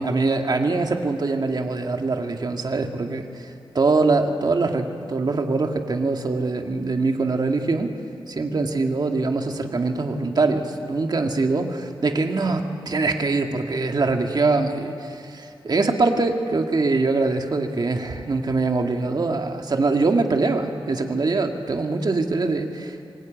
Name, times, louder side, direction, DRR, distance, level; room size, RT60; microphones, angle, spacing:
voice 1, 0.0-7.9 8.3-23.1, right 3 dB, 45° right, 4 dB, 1.9 m, -23 dB
26.0 x 21.0 x 9.2 m, 2.5 s
wide cardioid pair, 145°, 9 cm